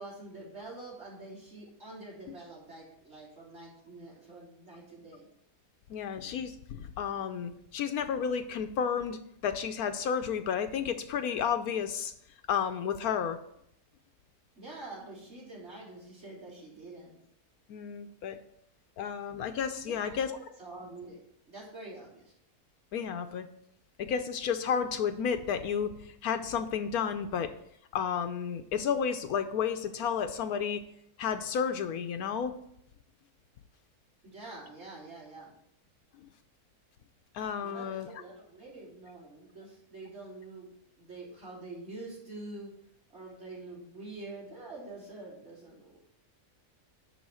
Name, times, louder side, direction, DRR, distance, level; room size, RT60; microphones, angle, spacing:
voice 1, 0.0-5.3 14.6-17.1 19.8-21.2 21.5-22.3 34.2-35.5 37.6-40.7 41.0-42.7 43.1-46.0, right 2 dB, 45° right, -4 dB, 3.6 m, -46 dB
voice 2, 5.9-12.1 12.5-13.4 17.7-18.4 19.0-20.4 22.9-23.5 24.0-27.5 27.9-30.8 31.2-32.5 37.3-38.1, left 7 dB, 75° left, 8 dB, 1.1 m, -32 dB
10.0 x 3.7 x 6.3 m, 0.73 s
omnidirectional pair, 1.6 m